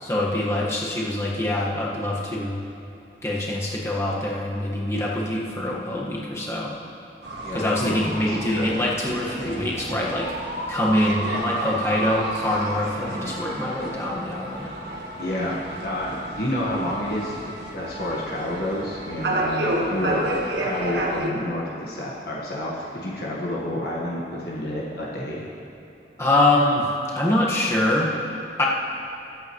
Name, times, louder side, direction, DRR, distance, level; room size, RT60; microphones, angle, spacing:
voice 1, 0.0-2.6 3.2-6.7 7.5-10.3 10.7-14.6 26.2-26.9 27.1-28.1 28.6-28.7, left 1 dB, 15° left, -5 dB, 1.5 m, -24 dB
sound 1, 7.2-21.3, right 1 dB, 75° right, 1.4 m, -31 dB
voice 2, 7.3-8.7 15.2-25.4, left 1 dB, 55° left, -5 dB, 1.5 m, -29 dB
22.0 x 8.6 x 3.1 m, 2.9 s
head